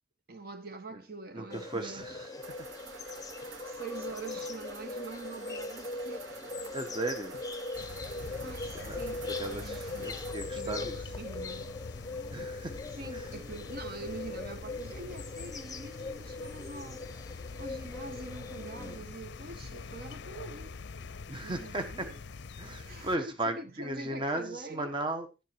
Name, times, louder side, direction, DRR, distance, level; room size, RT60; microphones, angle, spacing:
voice 1, 0.3-2.4 3.6-6.4 8.4-10.2 10.5-11.7 12.9-17.0 17.4-20.8 21.4-22.2 22.9-24.9, right 3 dB, 50° right, 1.2 m, -45 dB
voice 2, 1.3-2.3 3.4-3.7 6.7-7.4 8.7-11.0 12.3-12.8 13.1-13.3 18.8-19.0 21.3-22.1 22.6-25.3, right 1 dB, 25° right, 1.2 m, -36 dB
sound 1, 1.5-19.0, left 3 dB, 20° left, 0.8 m, -41 dB
sound 2, 2.4-10.3, right 4 dB, 80° right, 1.2 m, -49 dB
sound 3, 7.7-23.2, left 4 dB, 60° left, 0.5 m, -44 dB
11.5 x 8.2 x 4.6 m
head